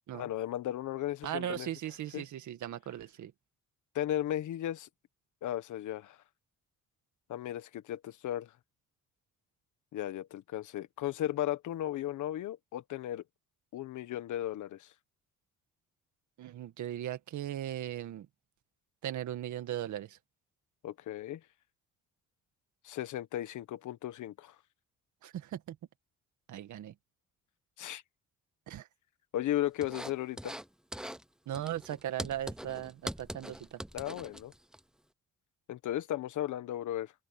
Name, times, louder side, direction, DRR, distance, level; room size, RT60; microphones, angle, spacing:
voice 1, 0.1-1.7 2.1-2.2 3.9-4.9 5.4-6.2 7.3-8.5 9.9-13.2 13.7-14.9 20.8-21.4 22.8-24.5 27.8-28.0 29.3-30.6 33.9-34.5 35.7-37.1, left 12 dB, 80° left, 1.5 m, -35 dB
voice 2, 1.2-3.3 16.4-18.3 19.0-20.2 25.2-25.8 26.5-26.9 28.7-28.9 31.5-33.8, right 11 dB, 75° right, 2.0 m, -38 dB
sound 1, 29.8-30.7 30.9-31.2 31.5-34.8, right 1 dB, ahead, 0.6 m, -42 dB
open air
cardioid pair, 90°, 30 cm